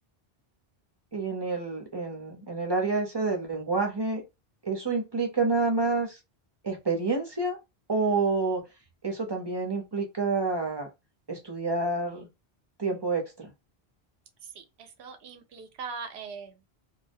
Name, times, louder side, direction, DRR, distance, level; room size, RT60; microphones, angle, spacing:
voice 1, 1.1-4.2 4.6-6.2 6.6-7.6 7.9-8.6 9.0-10.9 11.3-12.3 12.8-13.2, right 3 dB, 30° right, 0.6 m, -28 dB
voice 2, 14.4-16.7, right 5 dB, 90° right, 0.8 m, -41 dB
2.3 x 2.1 x 2.5 m
omnidirectional pair, 1.0 m